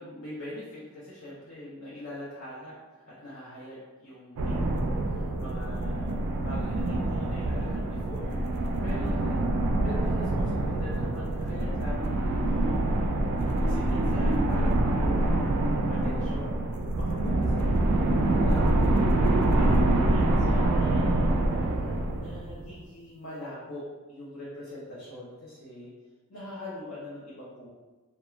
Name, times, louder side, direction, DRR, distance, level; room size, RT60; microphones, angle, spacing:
voice 1, 0.0-9.4 9.8-16.6 16.9-21.7 22.1-25.9 26.3-27.7, left 1 dB, 60° left, -9 dB, 0.6 m, -43 dB
sound 1, 4.4-22.8, right 1 dB, 85° right, 0.4 m, -25 dB
2.3 x 2.2 x 3.0 m, 1.3 s
head